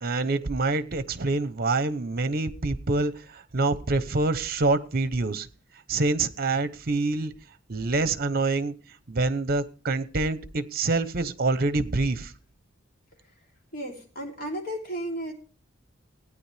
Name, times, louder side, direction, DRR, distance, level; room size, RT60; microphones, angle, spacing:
voice 1, 0.0-5.5 5.9-7.3 7.7-8.7 9.1-12.3, right 3 dB, 50° right, 0.9 m, -26 dB
voice 2, 13.7-15.3, right 1 dB, 50° left, 3.4 m, -33 dB
16.5 x 9.7 x 3.4 m
head